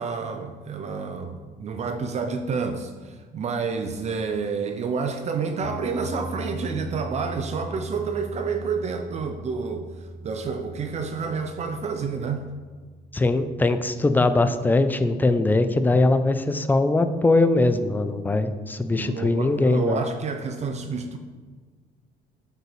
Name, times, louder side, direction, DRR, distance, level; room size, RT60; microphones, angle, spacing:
voice 1, 0.0-12.4 18.8-21.2, right 5 dB, 40° right, 5 dB, 0.5 m, -29 dB
sound 1, 5.6-15.9, equal, 35° left, 0.8 m, -40 dB
voice 2, 13.1-20.0, left 2 dB, 10° left, 10 dB, 0.4 m, -21 dB
7.6 x 5.5 x 3.1 m, 1.5 s
cardioid pair, 110°, 17 cm